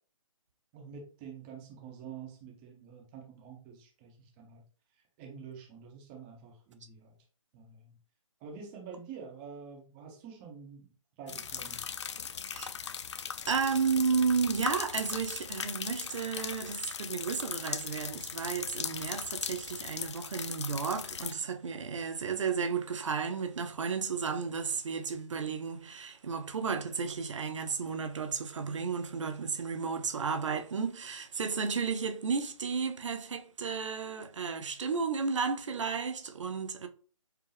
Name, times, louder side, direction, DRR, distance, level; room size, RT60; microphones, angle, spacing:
voice 1, 0.7-4.6 5.2-7.2 7.5-7.9 8.4-10.9 11.2-11.8, right 6 dB, 15° right, 0.9 m, -47 dB
sound 1, 11.3-21.3, left 7 dB, 55° left, 0.4 m, -39 dB
voice 2, 13.5-36.9, right 5 dB, 60° right, 0.6 m, -33 dB
4.7 x 2.3 x 3.3 m
figure-of-eight pair, 155°, 17 cm